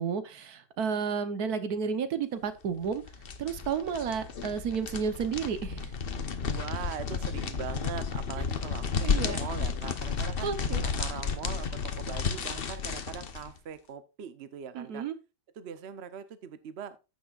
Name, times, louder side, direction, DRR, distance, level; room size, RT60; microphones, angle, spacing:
voice 1, 0.0-3.0 3.4-5.9 9.0-9.4 10.4-10.8 14.7-15.1, right 6 dB, 70° right, 1.4 m, -32 dB
sound 1, 2.8-13.5, left 5 dB, 45° left, 0.9 m, -32 dB
voice 2, 6.4-10.5 10.8-15.1 15.6-17.0, right 8 dB, 50° right, 0.9 m, -41 dB
14.5 x 6.4 x 2.4 m
omnidirectional pair, 1.7 m